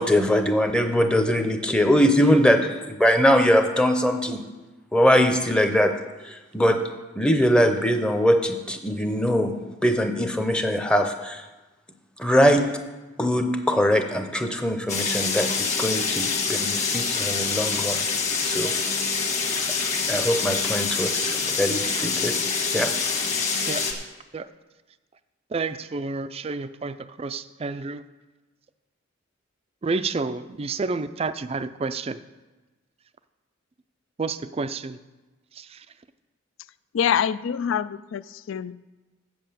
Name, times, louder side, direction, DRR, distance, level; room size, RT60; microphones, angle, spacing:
voice 1, 0.0-4.4 4.9-5.9 6.2-6.8 7.1-11.4 12.2-12.7 13.2-18.1 18.4-18.7 20.1-22.4 22.7-22.9, equal, 5° left, 6 dB, 0.7 m, -22 dB
sound 1, 14.9-23.9, left 5 dB, 35° left, 1.5 m, -26 dB
voice 2, 25.5-28.0 29.8-32.2 34.2-35.0 35.5-35.9, right 4 dB, 30° right, 12 dB, 0.3 m, -30 dB
voice 3, 36.9-38.8, left 8 dB, 65° left, 17 dB, 0.3 m, -25 dB
8.2 x 7.7 x 6.9 m, 1.2 s
head